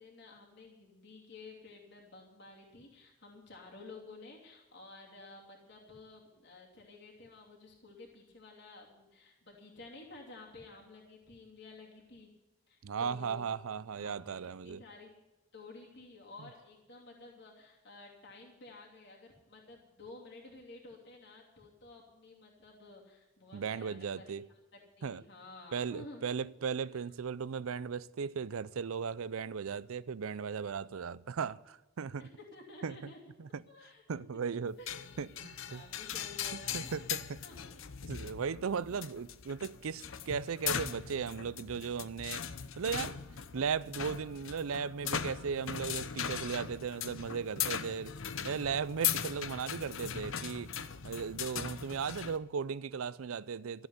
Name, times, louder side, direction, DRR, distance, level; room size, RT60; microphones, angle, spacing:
voice 1, 0.0-12.3 12.7-13.5 14.0-15.1 15.5-24.3 24.7-26.2 26.9-27.0 32.2-33.3 33.7-34.2 34.8-35.4 35.7-37.8 38.9-39.0, left 3 dB, 55° left, 2.8 m, -53 dB
voice 2, 12.8-14.8 23.5-24.4 25.0-25.2 25.7-32.3 32.8-33.1 33.4-33.6 34.1-34.8 35.2-35.8 36.7-37.4 38.1-42.4 42.8-43.2 43.5-48.1 48.4-50.7 51.0-53.9, right 6 dB, 85° right, 0.5 m, -37 dB
sound 1, 34.9-52.4, left 8 dB, 70° left, 0.8 m, -39 dB
14.0 x 7.9 x 9.7 m
head